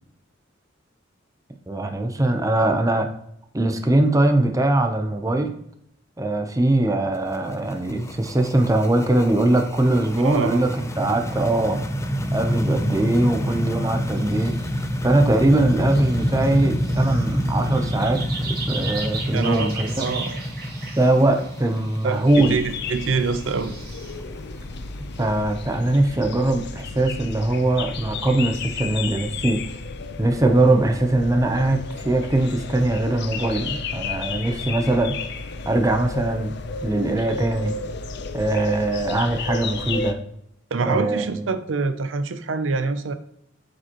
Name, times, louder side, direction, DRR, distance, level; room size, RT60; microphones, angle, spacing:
voice 1, 1.7-3.1 3.5-5.5 6.2-11.8 12.3-14.5 15.0-20.1 21.0-22.6 25.2-29.6 30.2-35.2 35.7-36.6 36.8-37.7 38.3-40.2 40.8-41.3, right 2 dB, 15° right, 5 dB, 0.7 m, -21 dB
sound 1, 7.1-25.9, equal, 15° left, 0.5 m, -28 dB
voice 2, 10.2-10.6 19.3-20.4 22.0-23.7 40.7-43.1, right 4 dB, 75° right, 10 dB, 0.5 m, -25 dB
sound 2, 14.1-14.9 15.1-24.2, right 4 dB, 50° right, 2.1 m, -38 dB
sound 3, 22.3-40.1, left 4 dB, 60° left, 0.6 m, -32 dB
8.0 x 5.2 x 3.0 m, 0.72 s
head